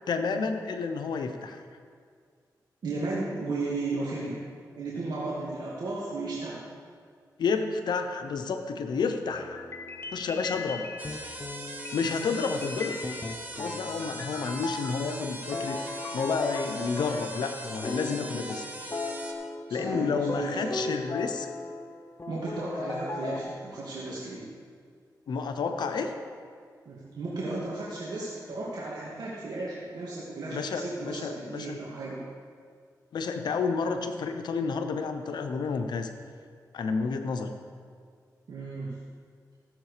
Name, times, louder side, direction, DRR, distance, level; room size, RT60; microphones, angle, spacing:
voice 1, 0.1-1.6 7.4-9.7 10.1-10.9 11.9-13.0 13.5-18.7 19.7-21.5 25.3-26.1 30.5-31.8 33.1-36.1 36.7-37.5, left 5 dB, 85° left, 6 dB, 0.9 m, -30 dB
voice 2, 2.8-4.4 4.8-6.6 19.7-20.8 22.3-24.5 26.9-32.2 38.5-38.9, right 2 dB, 70° right, -6 dB, 2.2 m, -34 dB
sound 1, 9.3-17.6 17.8-23.4, left 2 dB, 35° left, 1.0 m, -37 dB
sound 2, 11.0-19.3, right 1 dB, 25° right, 1.8 m, -41 dB
15.5 x 7.4 x 5.0 m, 2.1 s
cardioid pair, 65°, 7 cm